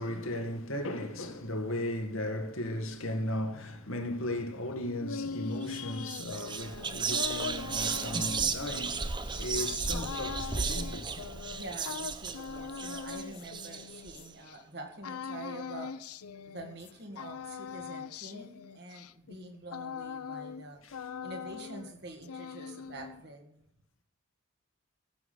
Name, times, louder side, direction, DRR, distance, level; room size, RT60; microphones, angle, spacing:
voice 1, 0.0-11.3 20.8-21.0, left 1 dB, 70° left, 1.9 m, -36 dB
sound 1, 4.7-14.6 15.0-16.9 17.2-20.7 20.9-21.9 22.2-23.2, left 5 dB, 90° left, 0.6 m, -41 dB
Whispering, 5.6-5.8 6.1-14.2, right 5 dB, 20° right, 0.6 m, -34 dB
voice 2, 11.5-16.1 16.4-20.8 21.2-23.7, right 2 dB, 50° right, 2.1 m, -46 dB
15.5 x 7.4 x 6.9 m
head